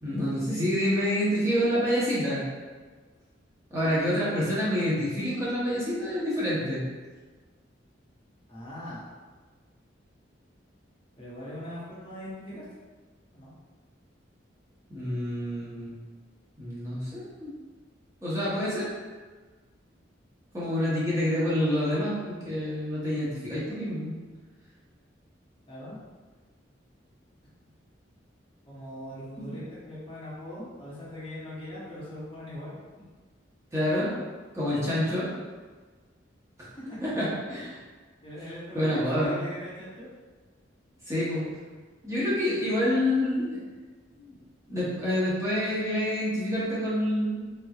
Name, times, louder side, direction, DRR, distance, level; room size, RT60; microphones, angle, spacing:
voice 1, 0.0-2.4 3.7-6.8 14.9-16.0 16.6-17.5 18.2-18.9 20.5-24.1 33.7-34.1 34.5-35.3 37.0-37.8 38.7-39.4 41.1-41.4 42.0-43.6 44.2-44.4 44.7-47.6, equal, 15° right, -9 dB, 0.7 m, -27 dB
voice 2, 8.5-9.0 11.2-12.6 13.3-13.5 25.7-26.0 28.6-32.7 36.6-36.7 38.2-40.1, equal, 30° left, -7 dB, 0.8 m, -40 dB
3.5 x 3.1 x 2.3 m, 1.4 s
head